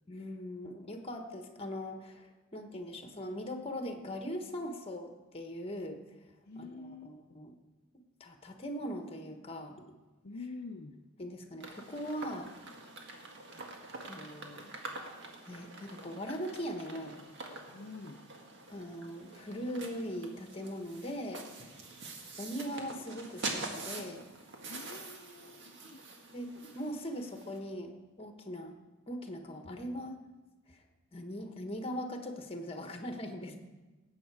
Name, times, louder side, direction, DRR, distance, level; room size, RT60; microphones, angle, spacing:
voice 1, 0.1-6.0 6.5-7.6 8.2-9.8 11.2-12.5 13.5-13.6 14.1-14.7 15.5-17.2 18.7-21.5 22.4-24.2 26.3-28.8 29.1-30.2 30.7-30.8 31.1-33.6, equal, 30° left, 5 dB, 1.3 m, -40 dB
voice 2, 6.5-7.4 10.2-11.0 17.7-18.2 24.7-26.0, left 3 dB, 55° left, 3 dB, 0.7 m, -47 dB
sound 1, 11.6-27.6, right 3 dB, 60° right, 1.8 m, -45 dB
18.0 x 8.0 x 4.8 m, 1.2 s
head